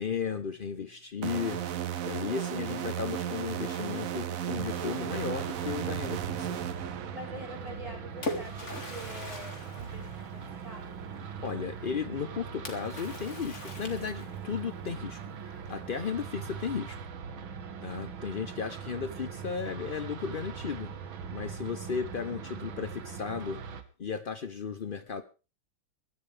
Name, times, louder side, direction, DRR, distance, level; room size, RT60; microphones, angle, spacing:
voice 1, 0.0-1.6 2.0-6.6 11.4-15.2 15.7-17.0 17.8-20.9 21.3-23.6 24.0-25.2, left 6 dB, 75° left, 11 dB, 0.4 m, -35 dB
sound 1, 1.2-7.7, right 10 dB, 55° right, 1.0 m, -35 dB
sound 2, 4.6-23.8, right 6 dB, 80° right, 2.1 m, -41 dB
voice 2, 7.1-11.0, right 1 dB, 15° right, 1 dB, 5.8 m, -45 dB
Splash splatter, 7.7-10.9 12.7-14.6, left 2 dB, 35° left, 2.8 m, -41 dB
22.5 x 12.5 x 3.4 m, 0.33 s
omnidirectional pair, 2.2 m